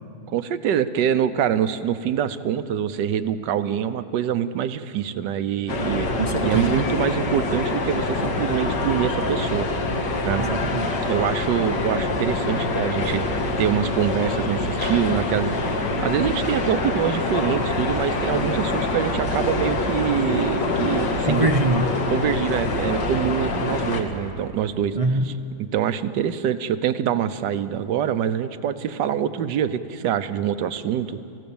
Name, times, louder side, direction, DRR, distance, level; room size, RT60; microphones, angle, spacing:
voice 1, 0.3-6.1 6.4-9.7 10.2-10.4 11.1-13.2 13.6-21.5 22.1-25.0 25.2-25.3 25.6-31.2, right 9 dB, 85° right, 12 dB, 1.4 m, -25 dB
sound 1, 5.7-24.0, left 2 dB, 80° left, 2.2 m, -25 dB
voice 2, 6.2-6.7 10.4-11.0 21.3-21.9 24.9-25.3, right 2 dB, 45° right, 5 dB, 0.4 m, -23 dB
28.5 x 15.0 x 7.1 m, 2.6 s
omnidirectional pair, 1.9 m